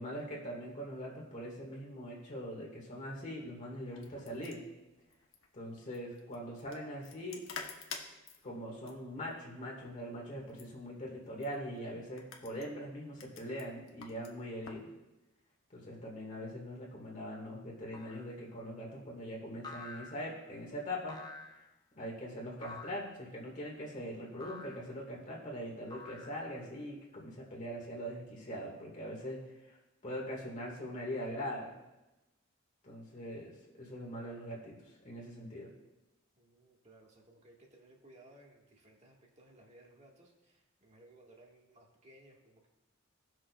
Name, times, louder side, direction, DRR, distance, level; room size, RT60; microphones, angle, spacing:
voice 1, 0.0-4.6 5.5-7.4 8.4-14.9 15.7-21.2 22.0-29.8 30.0-31.7 32.8-35.7, equal, 40° left, -3 dB, 1.9 m, -42 dB
sound 1, 3.8-14.9, left 5 dB, 85° left, 1.1 m, -51 dB
sound 2, 17.9-18.3 19.6-20.4 21.1-21.7 22.6-23.1 24.4-24.9 25.9-26.7, left 3 dB, 20° left, 0.7 m, -48 dB
voice 2, 36.4-42.7, right 1 dB, 35° right, -1 dB, 1.7 m, -60 dB
18.0 x 6.3 x 2.4 m, 0.99 s
head